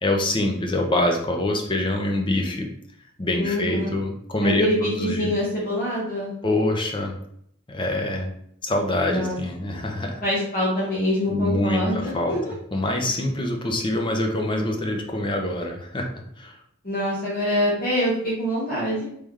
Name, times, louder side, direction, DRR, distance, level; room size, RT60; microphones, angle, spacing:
voice 1, 0.0-2.7 3.2-5.3 6.4-7.2 7.7-8.3 8.6-10.2 11.3-12.3 12.7-16.1 16.4-16.6, left 1 dB, 25° left, 2 dB, 0.6 m, -25 dB
voice 2, 3.4-3.9 4.4-6.3 9.1-9.4 9.6-9.7 10.2-12.5 16.8-19.0, equal, 45° left, -6 dB, 1.2 m, -25 dB
3.6 x 3.3 x 3.2 m, 0.71 s
head